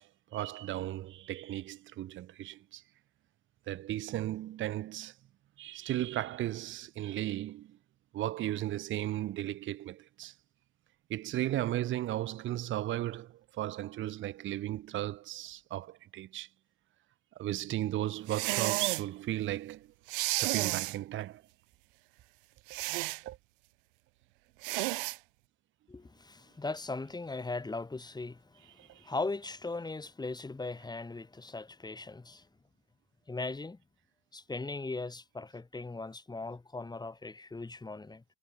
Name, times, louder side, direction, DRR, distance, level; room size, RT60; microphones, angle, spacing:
voice 1, 0.0-2.8 3.7-5.2 5.6-7.8 8.1-10.4 11.1-16.5 17.3-19.9 20.3-21.4 23.2-23.4 28.8-29.1, right 14 dB, 40° right, 1.1 m, -36 dB
sound 1, 18.3-19.1 20.1-21.0 22.7-23.2 24.6-25.2, right 24 dB, 60° right, 0.5 m, -32 dB
voice 2, 25.9-28.7 29.0-32.5 33.3-33.8 34.3-38.2, left 3 dB, 15° left, 3.3 m, -39 dB
figure-of-eight pair, 70°, 31 cm